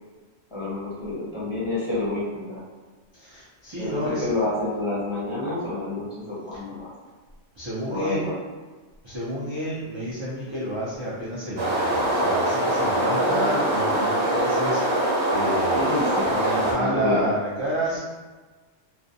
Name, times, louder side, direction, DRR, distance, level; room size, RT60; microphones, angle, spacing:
voice 1, 0.5-2.6 3.8-6.9 7.9-8.3 13.0-13.7 15.7-16.3 16.8-17.3, left 2 dB, 35° left, -9 dB, 0.6 m, -29 dB
voice 2, 3.1-4.4 7.6-8.3 9.0-15.8 16.3-18.0, right 1 dB, 45° right, -9 dB, 0.4 m, -30 dB
sound 1, 11.6-16.7, right 1 dB, 80° right, 1.0 m, -23 dB
2.5 x 2.1 x 2.6 m, 1.3 s
omnidirectional pair, 1.1 m